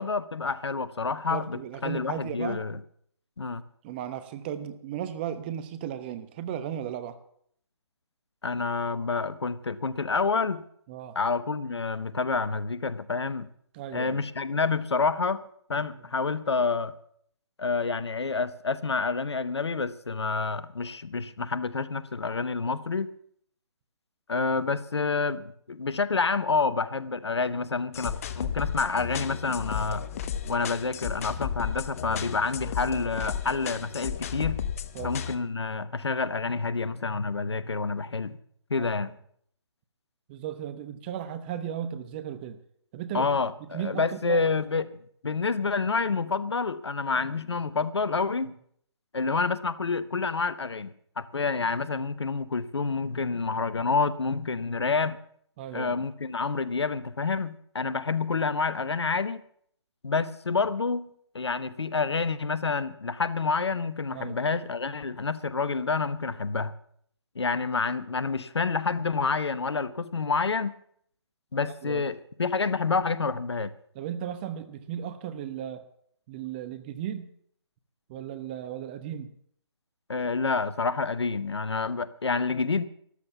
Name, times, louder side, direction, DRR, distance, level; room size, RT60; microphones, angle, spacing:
voice 1, 0.0-2.8 3.4-3.6 8.4-10.6 11.1-13.5 13.9-15.4 15.7-16.9 17.6-23.1 24.3-30.1 30.5-34.6 35.0-38.4 38.7-39.1 43.1-45.0 45.2-48.5 49.1-55.2 55.7-59.4 60.0-61.1 61.3-66.7 67.3-70.8 71.5-73.7 80.1-82.8, left 4 dB, 65° left, 16 dB, 1.0 m, -28 dB
voice 2, 1.3-2.6 3.8-7.2 10.9-11.2 13.7-14.2 34.9-35.2 38.7-38.9 40.3-42.6 42.9-43.3 43.7-44.4 47.1-47.2 55.6-56.0 64.1-64.4 71.6-72.0 73.9-75.8 76.3-77.3 78.1-79.3, right 10 dB, 20° right, 11 dB, 1.0 m, -35 dB
sound 1, 27.9-35.3, left 8 dB, 30° left, 0.9 m, -34 dB
13.5 x 12.0 x 7.0 m, 0.66 s
figure-of-eight pair, 145°, 15 cm